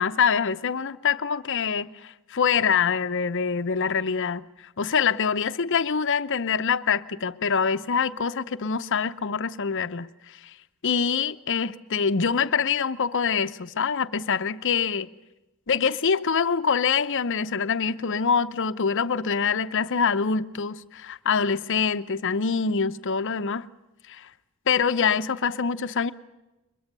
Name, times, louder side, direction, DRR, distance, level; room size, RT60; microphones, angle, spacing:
voice 1, 0.0-4.5 4.8-10.1 10.8-15.1 15.7-23.7 24.1-24.3 24.7-26.1, left 6 dB, 60° left, 0.8 m, -25 dB
22.5 x 22.0 x 6.8 m
head